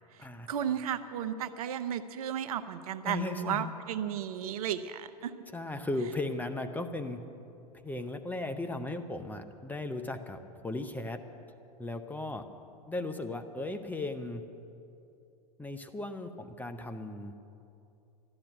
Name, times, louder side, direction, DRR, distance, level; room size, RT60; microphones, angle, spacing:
voice 1, 0.1-5.3, right 9 dB, 65° right, 11 dB, 0.8 m, -34 dB
voice 2, 3.0-3.7 5.5-7.2 7.8-11.2 11.8-12.4 12.9-14.4 15.6-17.3, left 2 dB, 10° left, 6 dB, 0.8 m, -36 dB
13.5 x 11.0 x 8.2 m, 2.7 s
hypercardioid pair, 90°, 20 cm